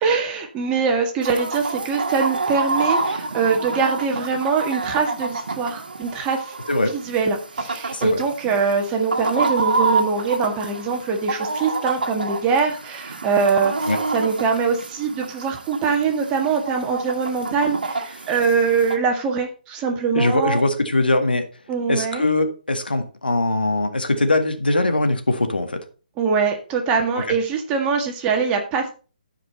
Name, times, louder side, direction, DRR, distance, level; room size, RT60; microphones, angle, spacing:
voice 1, 0.0-6.5 6.9-20.6 21.7-22.3 26.2-28.9, right 5 dB, 20° right, 2 dB, 1.8 m, -23 dB
Chicken rooster, 1.2-19.0, right 3 dB, 75° right, 1.6 m, -28 dB
voice 2, 7.9-8.2 13.9-14.0 20.1-21.5 21.9-25.8 27.2-27.3, left 2 dB, 90° left, 6 dB, 1.8 m, -21 dB
13.5 x 5.1 x 4.2 m, 0.35 s
figure-of-eight pair, 145°, 5 cm